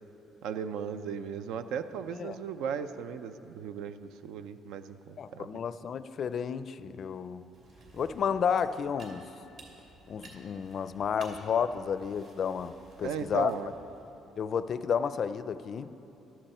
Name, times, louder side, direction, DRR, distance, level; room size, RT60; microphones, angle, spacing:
voice 1, 0.4-5.5 13.0-13.7, right 7 dB, 85° right, 10 dB, 0.5 m, -36 dB
voice 2, 5.2-7.5 7.9-9.3 10.1-12.7 13.0-13.5 14.4-15.9, left 7 dB, 45° left, 13 dB, 0.4 m, -31 dB
sound 1, 7.5-14.1, right 3 dB, 60° right, 2.7 m, -54 dB
14.5 x 12.5 x 4.3 m, 2.9 s
cardioid pair, 135°, 0 cm